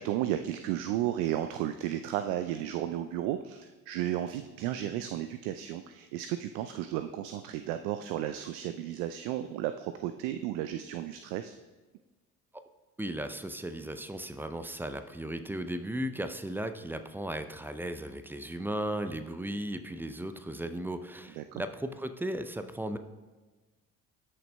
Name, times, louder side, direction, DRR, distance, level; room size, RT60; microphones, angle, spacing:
voice 1, 0.0-11.5 21.4-21.6, right 12 dB, 60° right, 9 dB, 0.5 m, -33 dB
voice 2, 13.0-23.0, right 1 dB, 5° right, 9 dB, 0.4 m, -36 dB
13.0 x 6.5 x 2.2 m, 1.3 s
figure-of-eight pair, 50°, 43 cm